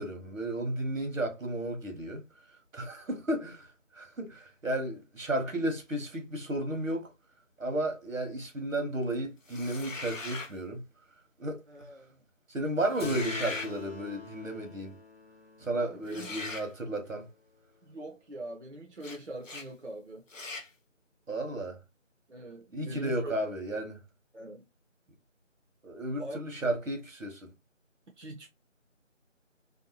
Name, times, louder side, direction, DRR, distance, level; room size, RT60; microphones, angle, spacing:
voice 1, 0.0-2.2 2.7-7.1 7.6-10.8 11.4-11.9 12.5-15.0 15.6-17.3 21.3-21.8 22.7-24.0 25.8-27.5, right 1 dB, 85° right, 1.1 m, -33 dB
sound 1, 9.5-10.6 12.8-13.7 16.1-16.7 19.0-19.2 19.4-19.7 20.3-20.7, left 3 dB, 80° left, 0.8 m, -39 dB
voice 2, 11.7-12.2 15.7-16.3 17.8-20.3 22.3-23.4 24.3-24.6 26.2-26.4 28.2-28.5, right 1 dB, 60° right, 0.7 m, -43 dB
Keyboard (musical), 13.0-17.9, left 4 dB, 50° left, 0.6 m, -45 dB
2.7 x 2.2 x 2.7 m
figure-of-eight pair, 180°, 39 cm